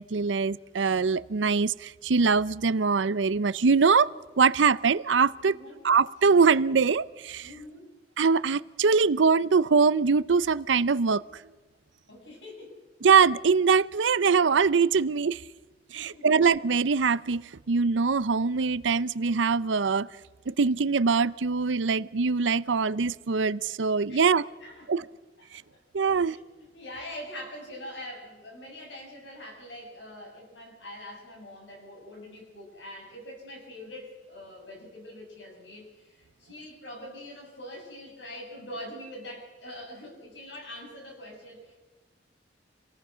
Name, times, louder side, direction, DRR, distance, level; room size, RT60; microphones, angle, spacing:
voice 1, 0.0-4.1 4.4-5.5 5.8-7.5 8.2-11.2 13.0-15.4 15.9-20.1 20.5-24.5 24.9-25.0 25.9-26.4, right 5 dB, 90° right, 0.6 m, -23 dB
voice 2, 5.4-5.8 7.4-7.9 12.1-12.8 15.9-16.3 24.1-24.3 24.6-24.9 25.4-25.8 26.1-41.8, left 1 dB, 75° left, 7.4 m, -44 dB
26.5 x 18.0 x 6.2 m
head